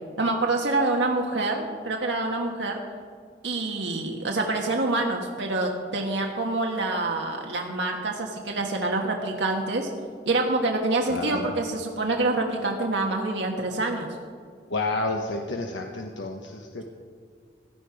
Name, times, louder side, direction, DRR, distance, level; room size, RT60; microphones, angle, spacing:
voice 1, 0.2-2.8 3.4-9.9 10.2-14.1, right 2 dB, 75° right, 1 dB, 1.4 m, -26 dB
voice 2, 11.1-11.5 14.7-16.8, left 2 dB, 90° left, 2 dB, 1.1 m, -30 dB
16.5 x 12.0 x 5.0 m, 2.1 s
head